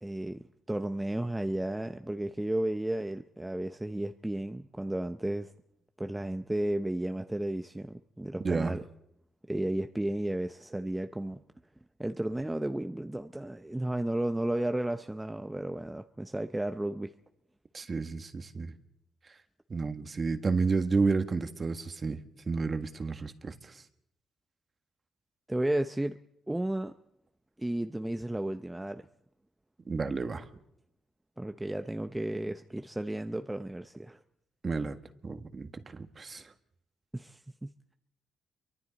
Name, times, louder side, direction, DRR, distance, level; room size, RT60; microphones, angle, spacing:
voice 1, 0.0-5.5 6.0-8.8 9.5-11.4 12.0-17.1 25.5-26.2 26.5-26.9 27.6-29.1 31.4-34.2 37.1-37.9, right 1 dB, 10° right, 8 dB, 0.7 m, -33 dB
voice 2, 8.4-8.8 17.7-18.7 19.7-23.7 29.9-30.4 34.6-35.0 35.2-36.4, right 4 dB, 35° right, 8 dB, 1.5 m, -31 dB
28.5 x 24.0 x 4.1 m, 0.80 s
cardioid pair, 90°, 0 cm